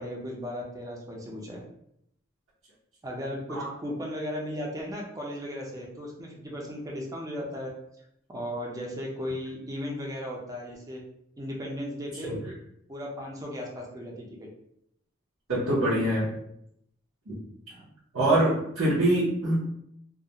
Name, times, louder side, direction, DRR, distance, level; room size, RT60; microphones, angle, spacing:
voice 1, 0.0-1.6 3.0-7.7 8.3-11.0 11.4-12.3 12.9-14.5 17.7-17.9, equal, 15° right, -2 dB, 0.5 m, -36 dB
voice 2, 15.5-16.3 17.3-17.4 18.1-19.6, right 1 dB, 70° right, -10 dB, 0.7 m, -24 dB
2.3 x 2.0 x 2.8 m, 0.74 s
head